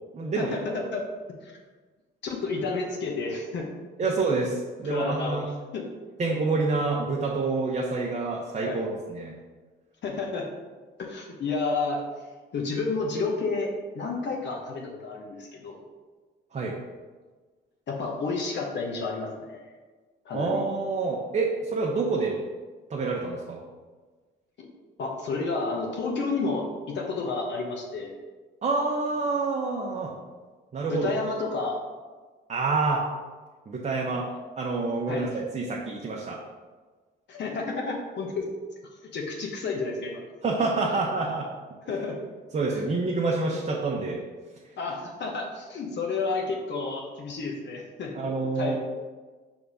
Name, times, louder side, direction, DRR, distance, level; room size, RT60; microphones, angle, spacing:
voice 1, 0.1-0.6 4.0-5.5 6.2-9.3 16.5-16.7 20.3-22.4 22.9-23.6 28.6-30.1 30.7-31.1 32.5-33.0 33.7-34.3 34.6-36.4 40.4-41.5 42.5-44.2 48.1-48.8, right 3 dB, 35° right, -3 dB, 0.8 m, -27 dB
voice 2, 2.2-3.7 4.8-5.8 8.7-8.8 10.0-10.4 11.0-12.0 12.5-15.8 17.9-19.6 20.2-20.7 24.6-24.7 25.0-28.1 30.9-31.8 35.1-35.4 37.3-38.5 39.1-40.2 41.9-42.2 44.8-48.2 48.5-48.8, left 3 dB, 65° left, 0 dB, 1.1 m, -31 dB
4.9 x 3.5 x 5.5 m, 1.4 s
cardioid pair, 90°, 20 cm